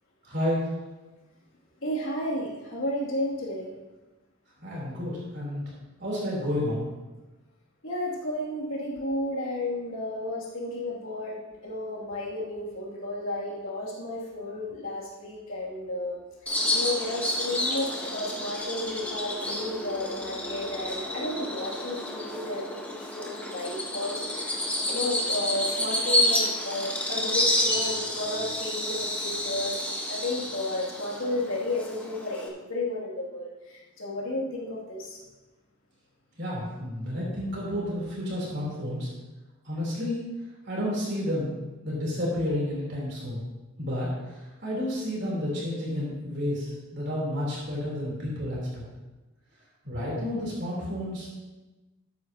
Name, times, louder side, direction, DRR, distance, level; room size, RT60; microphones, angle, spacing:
voice 1, 0.2-0.7 4.6-5.6 6.0-6.9 36.4-39.1 39.6-40.2 40.7-41.5 41.8-43.4 43.8-48.8 49.8-51.3, left 1 dB, 55° right, -5 dB, 3.5 m, -31 dB
voice 2, 1.8-3.7 7.8-16.2 16.4-24.6 24.9-29.8 30.1-35.2, left 1 dB, 70° left, -4 dB, 2.6 m, -32 dB
Bird vocalization bird call bird song, 16.5-32.5, left 1 dB, 5° left, 1.2 m, -30 dB
13.0 x 9.5 x 2.9 m, 1.1 s
head